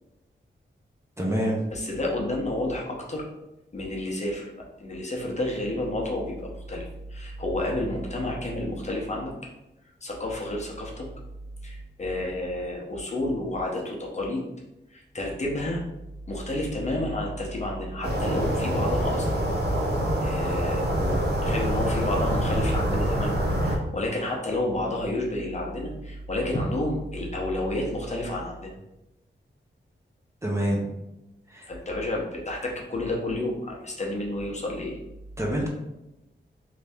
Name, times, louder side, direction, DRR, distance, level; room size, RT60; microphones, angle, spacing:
voice 1, 1.2-1.6 30.4-30.9 31.5-31.7 35.4-35.7, equal, 15° right, -2 dB, 0.7 m, -26 dB
voice 2, 1.7-3.3 3.7-4.5 4.8-9.3 10.0-11.1 11.6-14.4 14.9-15.8 16.3-19.3 20.2-23.4 23.6-28.7 31.7-35.0, left 1 dB, 35° left, -2 dB, 0.7 m, -30 dB
sound 1, 18.0-23.8, right 1 dB, 55° right, 0.8 m, -25 dB
3.2 x 2.6 x 3.4 m, 0.93 s
wide cardioid pair, 125°, 20 cm